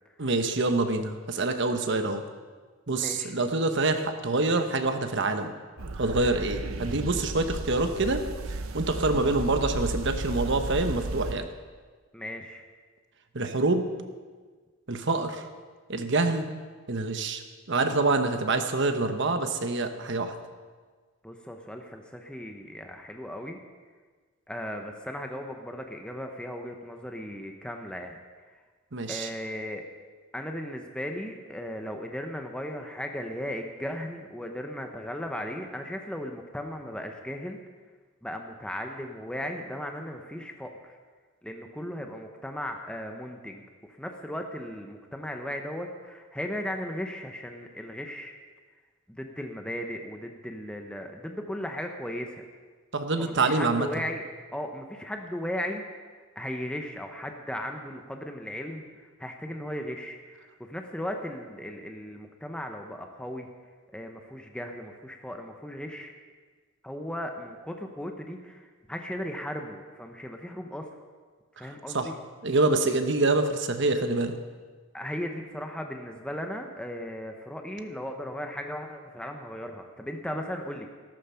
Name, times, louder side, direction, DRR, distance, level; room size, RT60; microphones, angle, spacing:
voice 1, 0.2-2.2 2.9-5.5 5.9-8.2 8.5-11.5 13.3-13.8 14.9-15.5 15.9-16.5 16.9-17.4 17.7-20.3 28.9-29.3 52.9-53.9 71.6-72.1 72.4-74.3, right 2 dB, 55° right, 7 dB, 1.1 m, -26 dB
voice 2, 2.9-3.3 12.1-12.6 21.2-23.6 24.5-28.2 29.0-29.8 30.3-37.6 38.2-41.0 41.4-43.6 44.0-48.3 49.1-52.4 53.2-54.2 54.5-56.1 56.4-58.8 59.2-63.5 63.9-66.1 66.8-70.9 71.6-72.1 74.9-80.9, equal, 5° left, 3 dB, 0.8 m, -36 dB
sound 1, 5.8-11.3, right 2 dB, 75° right, 0.8 m, -34 dB
14.0 x 13.5 x 5.7 m, 1.5 s
head